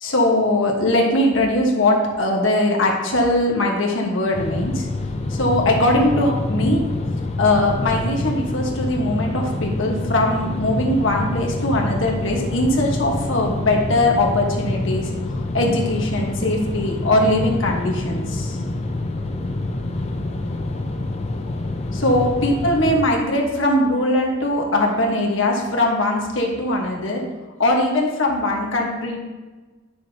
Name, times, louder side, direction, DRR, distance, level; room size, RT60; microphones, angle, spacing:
voice 1, 0.0-4.9 5.3-6.9 7.4-15.1 15.5-18.6 22.0-27.2 27.6-29.2, left 1 dB, 80° left, 0 dB, 1.3 m, -20 dB
sound 1, 4.3-23.0, left 2 dB, 35° left, 0.5 m, -26 dB
9.5 x 6.3 x 2.8 m, 1.3 s
head